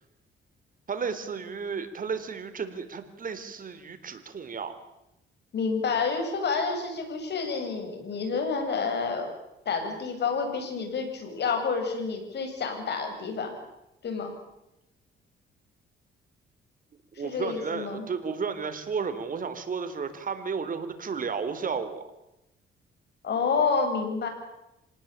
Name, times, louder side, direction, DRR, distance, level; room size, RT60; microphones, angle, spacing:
voice 1, 0.9-4.7 17.2-22.0, right 5 dB, 45° right, 9 dB, 3.7 m, -33 dB
voice 2, 5.5-9.3 9.7-13.5 14.0-14.3 17.2-18.1 23.2-24.3, left 5 dB, 60° left, 5 dB, 7.9 m, -29 dB
26.5 x 19.0 x 8.9 m, 0.89 s
cardioid pair, 90°, 20 cm